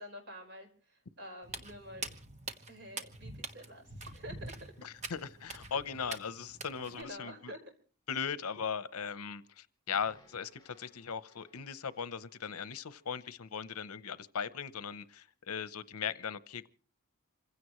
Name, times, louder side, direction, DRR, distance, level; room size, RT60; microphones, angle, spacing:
voice 1, 0.0-2.1 2.7-4.7 6.0-6.2 7.0-7.6, equal, 55° right, 4.9 m, -48 dB
Walk footsteps, 1.4-7.0, right 3 dB, 30° right, 1.3 m, -45 dB
voice 2, 4.8-7.5 8.1-16.7, left 6 dB, 75° left, 0.8 m, -38 dB
sound 1, 9.9-14.2, left 2 dB, 20° left, 5.3 m, -67 dB
27.0 x 16.0 x 3.1 m
head